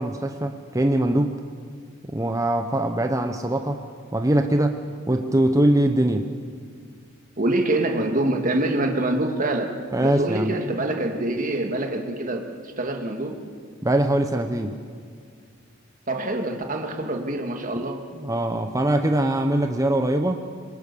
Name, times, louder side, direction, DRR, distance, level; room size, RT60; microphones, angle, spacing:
voice 1, 0.0-1.4 2.0-3.8 4.1-4.8 5.1-6.3 9.9-10.6 13.8-14.8 18.2-20.4, right 1 dB, 15° right, 5 dB, 0.8 m, -22 dB
voice 2, 7.4-9.7 10.0-13.4 16.1-18.0, right 2 dB, 40° right, 4 dB, 2.2 m, -25 dB
25.5 x 22.0 x 6.9 m, 2.1 s
head